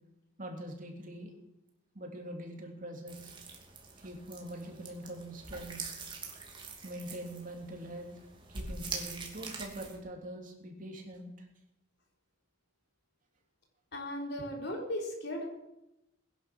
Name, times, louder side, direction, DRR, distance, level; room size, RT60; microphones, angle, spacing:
voice 1, 0.4-1.3 1.9-3.3 4.0-5.9 6.8-8.2 8.5-11.5, right 1 dB, 45° right, 2 dB, 3.1 m, -43 dB
sound 1, 3.1-10.0, right 4 dB, 25° right, 2.7 m, -44 dB
voice 2, 13.9-15.4, left 1 dB, 60° left, 1 dB, 4.1 m, -37 dB
20.5 x 10.5 x 6.2 m, 0.89 s
head